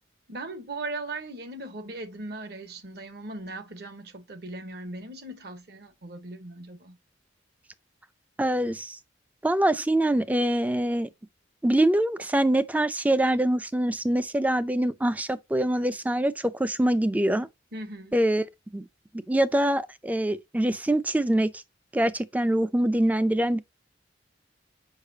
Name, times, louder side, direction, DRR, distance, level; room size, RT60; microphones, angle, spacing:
voice 1, 0.3-7.0 17.7-18.2, right 2 dB, 55° right, 1.0 m, -38 dB
voice 2, 8.4-9.0 9.4-11.1 11.6-17.5 18.1-18.5 18.7-18.8 19.1-21.6 21.9-23.6, right 1 dB, 10° right, 0.4 m, -24 dB
6.6 x 5.3 x 2.7 m
head